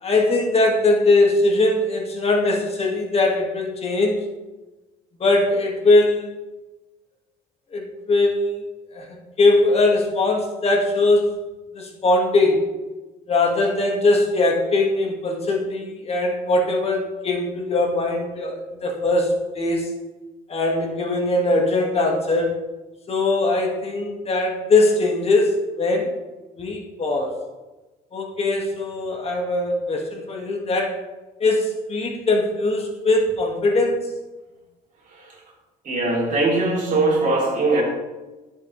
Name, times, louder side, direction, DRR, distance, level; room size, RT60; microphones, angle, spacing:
voice 1, 0.0-4.2 5.2-6.3 7.7-8.6 8.9-9.0 9.4-11.3 11.7-12.7 13.3-19.9 20.5-22.5 23.1-26.1 26.6-27.4 28.1-31.0 31.4-34.1, left 2 dB, 35° left, 0 dB, 1.9 m, -21 dB
voice 2, 35.8-37.8, right 2 dB, 50° right, -2 dB, 3.4 m, -20 dB
13.0 x 7.2 x 3.3 m, 1.2 s
cardioid pair, 110°, 17 cm